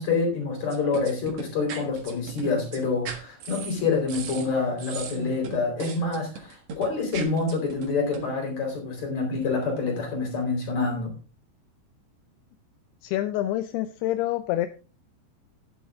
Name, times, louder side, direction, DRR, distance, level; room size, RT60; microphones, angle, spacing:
voice 1, 0.0-11.1, left 4 dB, 40° left, 2 dB, 5.2 m, -27 dB
sound 1, 0.7-8.4, right 4 dB, 55° right, 2.0 m, -38 dB
voice 2, 13.0-14.7, left 14 dB, 80° left, 10 dB, 2.4 m, -27 dB
11.5 x 9.3 x 3.7 m, 0.36 s
omnidirectional pair, 4.9 m